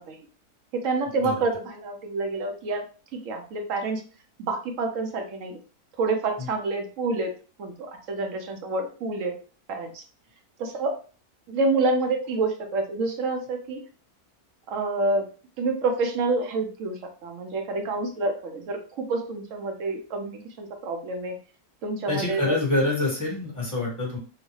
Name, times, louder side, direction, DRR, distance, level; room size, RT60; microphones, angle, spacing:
voice 1, 0.7-2.8 3.1-4.0 4.4-5.6 6.0-7.3 7.6-9.3 9.7-10.0 10.6-10.9 11.5-13.8 14.7-15.2 15.6-21.3 21.8-22.6, right 3 dB, 65° right, 4 dB, 1.0 m, -28 dB
voice 2, 22.1-24.2, left 2 dB, 15° left, -3 dB, 1.1 m, -26 dB
3.8 x 2.2 x 3.1 m, 0.38 s
omnidirectional pair, 1.6 m